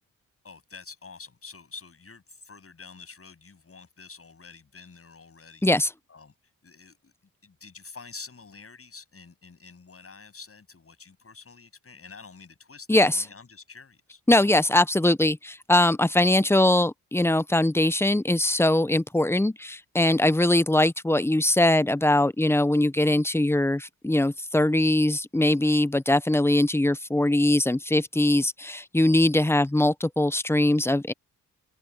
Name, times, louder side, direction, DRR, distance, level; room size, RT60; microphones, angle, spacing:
voice 1, 0.4-5.7 6.1-6.3 6.6-7.1 7.4-14.2, left 4 dB, 40° left, 7.9 m, -47 dB
voice 2, 12.9-13.2 14.3-31.1, left 1 dB, 5° left, 0.6 m, -22 dB
open air
cardioid pair, 80°, 35 cm